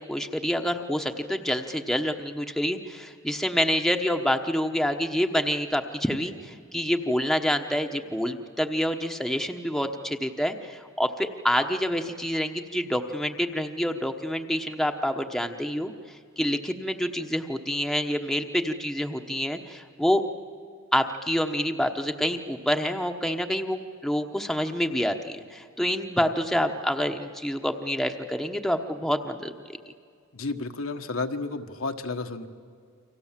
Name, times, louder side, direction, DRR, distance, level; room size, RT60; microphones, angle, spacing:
voice 1, 0.0-15.9 16.4-20.2 20.9-29.5, equal, ahead, 5 dB, 1.1 m, -27 dB
voice 2, 30.3-32.5, left 3 dB, 70° left, 5 dB, 1.4 m, -32 dB
29.0 x 25.0 x 7.5 m, 2.2 s
head